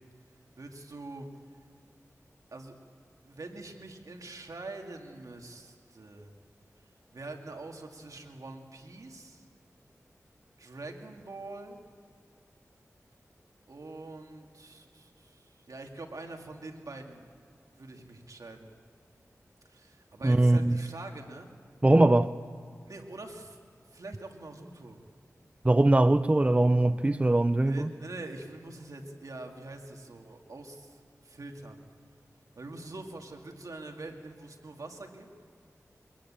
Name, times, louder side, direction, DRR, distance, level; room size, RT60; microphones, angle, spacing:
voice 1, 0.6-1.3 2.5-2.7 3.2-6.3 7.1-9.4 10.6-11.8 13.7-17.3 17.7-18.7 19.7-21.5 22.9-23.6 23.9-25.0 27.6-31.8 32.6-35.3, right 2 dB, 75° right, 2.3 m, -44 dB
voice 2, 20.2-20.8 21.8-22.3 25.6-27.9, right 2 dB, 20° right, 0.5 m, -22 dB
23.0 x 20.5 x 8.7 m
wide cardioid pair, 55°, 6 cm